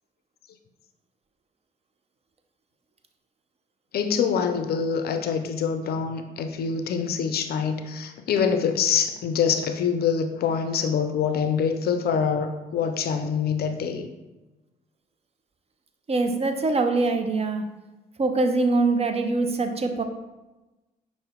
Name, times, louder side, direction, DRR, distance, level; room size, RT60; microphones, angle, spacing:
voice 1, 3.9-14.1, left 6 dB, 50° left, 8 dB, 0.4 m, -25 dB
voice 2, 16.1-17.6 18.2-20.0, right 3 dB, 30° right, 6 dB, 0.5 m, -23 dB
5.5 x 2.1 x 3.5 m, 1.1 s
hypercardioid pair, 45°, 20 cm